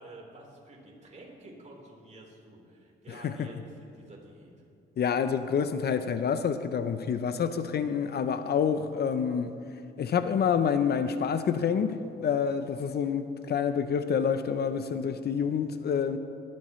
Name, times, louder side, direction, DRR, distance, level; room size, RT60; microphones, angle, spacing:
voice 1, 0.0-4.5, right 1 dB, 35° right, -2 dB, 4.0 m, -49 dB
voice 2, 3.1-3.5 5.0-9.5 10.0-16.2, left 7 dB, 55° left, 10 dB, 0.7 m, -28 dB
20.0 x 13.0 x 3.2 m, 2.5 s
cardioid pair, 90°, 20 cm